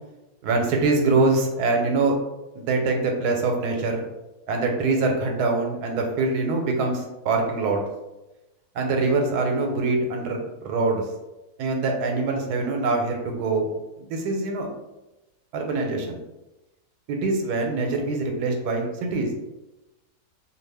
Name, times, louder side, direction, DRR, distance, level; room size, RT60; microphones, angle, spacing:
voice 1, 0.4-2.2 2.6-4.0 4.5-7.8 8.7-11.0 11.6-13.7 14.1-14.7 15.5-16.2 17.1-19.3, right 3 dB, 80° right, 2 dB, 1.1 m, -24 dB
2.6 x 2.4 x 3.3 m, 0.99 s
omnidirectional pair, 1.7 m